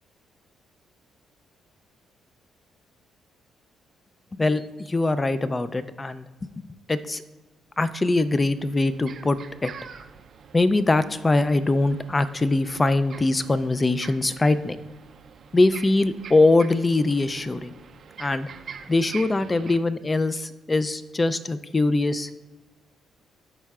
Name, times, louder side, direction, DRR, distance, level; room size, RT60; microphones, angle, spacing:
voice 1, 4.3-4.6 4.9-7.2 7.8-9.7 10.5-14.8 15.5-17.7 18.2-18.5 18.9-22.3, left 2 dB, 20° left, 13 dB, 0.4 m, -22 dB
sound 1, 8.2-19.8, right 6 dB, 55° right, 0.4 m, -45 dB
12.0 x 4.4 x 2.4 m, 1.3 s
cardioid pair, 90°, 0 cm